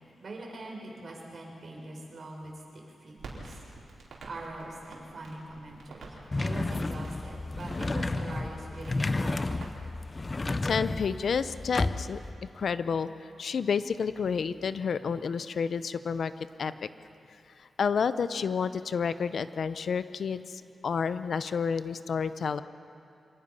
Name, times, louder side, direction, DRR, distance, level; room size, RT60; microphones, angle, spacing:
voice 1, 0.2-2.5 3.0-3.6 4.2-6.1 6.3-9.4, right 2 dB, 50° right, 0 dB, 5.1 m, -42 dB
Crackle, 3.2-10.1, right 2 dB, 80° right, 4.3 m, -49 dB
sound 1, 6.3-12.3, left 2 dB, 30° left, 0.7 m, -32 dB
voice 2, 10.6-16.3 16.6-16.9 17.6-22.6, left 6 dB, 65° left, 13 dB, 0.6 m, -30 dB
26.0 x 19.0 x 5.6 m, 2.6 s
wide cardioid pair, 100°, 0 cm